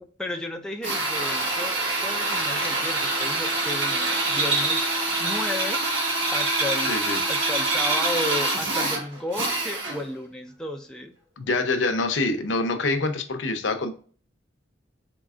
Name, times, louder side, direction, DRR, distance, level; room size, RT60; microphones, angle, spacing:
voice 1, 0.0-4.9 5.2-6.0 6.3-11.1, left 1 dB, 5° left, 2 dB, 0.4 m, -34 dB
Drill, 0.8-10.1, right 2 dB, 85° right, 1.4 m, -25 dB
voice 2, 6.9-7.2 11.4-13.9, left 3 dB, 80° left, 8 dB, 0.6 m, -25 dB
4.0 x 3.8 x 2.3 m, 0.43 s
head